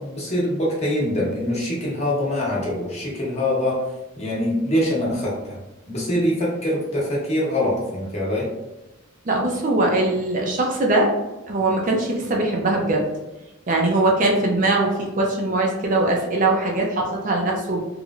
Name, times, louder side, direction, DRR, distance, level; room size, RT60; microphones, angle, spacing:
voice 1, 0.0-3.8 4.2-5.6 5.9-8.5, left 1 dB, 30° left, -4 dB, 0.9 m, -24 dB
voice 2, 9.2-11.1 11.5-13.1 13.7-17.8, right 2 dB, 40° right, -1 dB, 0.5 m, -21 dB
3.0 x 3.0 x 2.4 m, 1.0 s
head